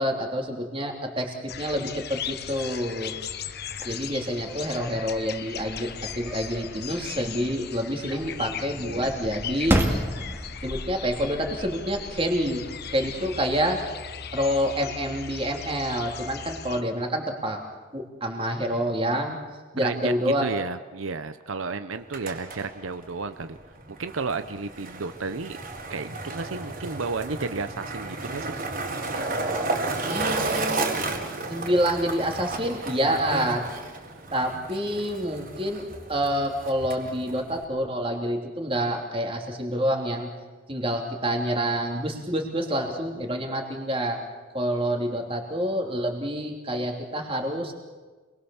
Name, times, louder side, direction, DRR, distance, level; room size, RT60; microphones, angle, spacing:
voice 1, 0.0-3.1 3.8-9.8 10.6-12.6 12.9-13.8 14.3-17.6 17.9-19.4 19.7-20.5 30.1-30.8 31.5-33.6 34.3-35.8 36.1-40.3 40.7-44.2 44.5-47.7, equal, 25° right, 2 dB, 3.2 m, -27 dB
sound 1, 1.5-16.8, left 8 dB, 50° left, 1.0 m, -38 dB
sound 2, 3.6-14.6, right 1 dB, 10° right, 2.3 m, -34 dB
voice 2, 19.8-20.1 20.4-23.6 24.0-25.6 25.9-28.5, right 4 dB, 85° right, 10 dB, 0.8 m, -32 dB
Skateboard, 21.9-37.6, right 3 dB, 45° right, 4.0 m, -33 dB
27.5 x 21.5 x 7.2 m, 1.3 s
head